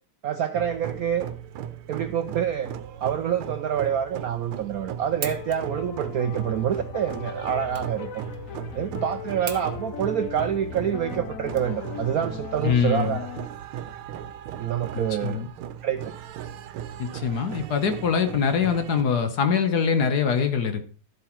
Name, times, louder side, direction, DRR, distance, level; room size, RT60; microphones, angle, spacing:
voice 1, 0.2-1.3 1.9-8.2 8.7-13.3 14.6-15.4 15.8-16.1, right 9 dB, 70° right, 0.8 m, -27 dB
sound 1, 0.5-19.0, right 10 dB, 90° right, 1.7 m, -37 dB
sound 2, 4.4-13.5, left 8 dB, 80° left, 0.7 m, -38 dB
sound 3, 5.2-12.2, right 7 dB, 55° right, 1.5 m, -42 dB
voice 2, 12.6-13.2 15.2-15.5 17.0-20.9, left 6 dB, 55° left, 1.4 m, -23 dB
12.0 x 7.8 x 4.5 m
omnidirectional pair, 2.3 m